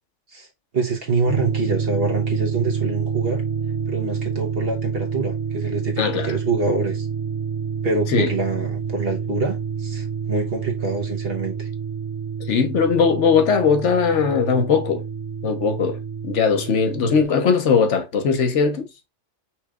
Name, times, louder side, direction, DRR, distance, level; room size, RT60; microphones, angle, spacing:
voice 1, 0.7-3.4 3.9-7.1 7.8-11.7, right 3 dB, 55° right, 1.2 m, -25 dB
sound 1, 1.3-17.2, right 6 dB, 85° right, 1.3 m, -28 dB
voice 2, 6.0-6.3 8.1-8.3 12.5-15.0 15.4-16.0 16.2-18.9, left 5 dB, 75° left, 1.3 m, -19 dB
5.8 x 3.2 x 2.3 m
omnidirectional pair, 1.2 m